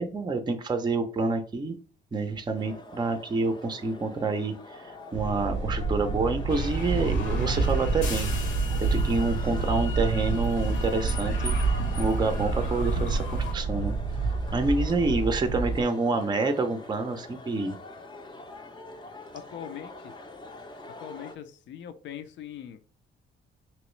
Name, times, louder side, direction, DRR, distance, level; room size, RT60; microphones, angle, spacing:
voice 1, 0.0-1.8 2.1-8.3 8.8-11.5 12.0-14.0 14.5-17.8, right 3 dB, 20° right, 8 dB, 0.5 m, -28 dB
sound 1, 2.6-21.3, left 2 dB, 20° left, 0.5 m, -45 dB
sound 2, 5.1-15.8, right 4 dB, 70° right, 0.6 m, -28 dB
sound 3, 6.5-13.5, left 4 dB, 85° left, 1.0 m, -37 dB
voice 2, 19.3-20.1 21.0-22.8, left 9 dB, 65° left, 9 dB, 0.5 m, -41 dB
3.0 x 3.0 x 3.1 m, 0.42 s
cardioid pair, 90°, 20 cm